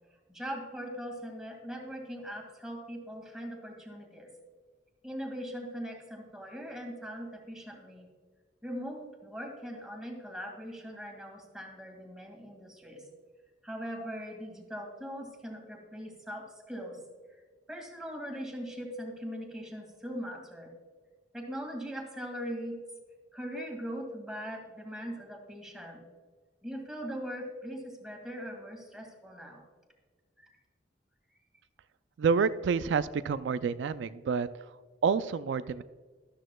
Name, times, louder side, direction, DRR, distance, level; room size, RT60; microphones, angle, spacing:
voice 1, 0.3-4.3 5.0-8.1 8.6-13.0 13.6-17.0 17.7-20.7 21.3-22.8 23.3-26.0 26.6-29.7 30.4-30.5, equal, 5° right, 1 dB, 2.0 m, -40 dB
voice 2, 32.2-34.5 35.0-35.8, right 5 dB, 85° right, 13 dB, 0.3 m, -28 dB
12.5 x 12.5 x 2.2 m, 1.5 s
head